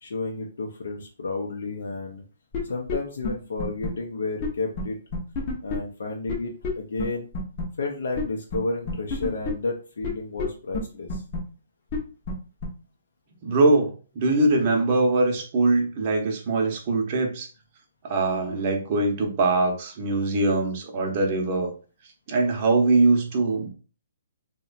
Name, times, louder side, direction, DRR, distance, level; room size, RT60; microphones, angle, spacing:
voice 1, 0.0-2.2 2.6-5.0 5.6-7.3 7.8-11.2, left 3 dB, 75° left, 1 dB, 0.5 m, -31 dB
sound 1, 2.5-2.6 2.9-3.0 3.2-3.3 3.6-3.9 4.4-4.5 4.8-4.9 5.1-5.8 6.3-6.4 6.6-6.7 7.0-7.1 7.3-7.6 8.2-8.3 8.5-8.6 8.9-9.5 10.0-10.1 10.4-10.5 10.7-10.8 11.1-11.4 11.9-12.0 12.3-12.4 12.6-12.7, left 4 dB, 30° left, 0.6 m, -28 dB
voice 2, 13.4-17.5 18.0-21.7 22.3-23.7, right 2 dB, 30° right, 2 dB, 0.7 m, -22 dB
2.8 x 2.2 x 2.4 m, 0.37 s
hypercardioid pair, 165°, 0 cm